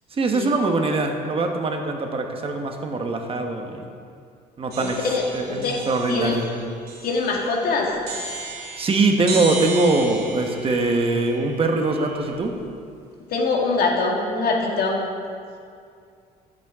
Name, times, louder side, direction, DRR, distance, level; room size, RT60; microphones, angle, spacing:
voice 1, 0.1-3.9 4.6-5.0 5.3-6.5 8.8-12.5, right 3 dB, 35° right, 3 dB, 1.2 m, -22 dB
sound 1, 4.7-12.6, right 3 dB, 70° right, 2.1 m, -35 dB
voice 2, 4.8-5.8 6.1-6.4 7.0-7.9 13.3-15.0, left 3 dB, 65° left, 0 dB, 2.0 m, -23 dB
14.5 x 7.7 x 3.7 m, 2.3 s
cardioid pair, 110°, 17 cm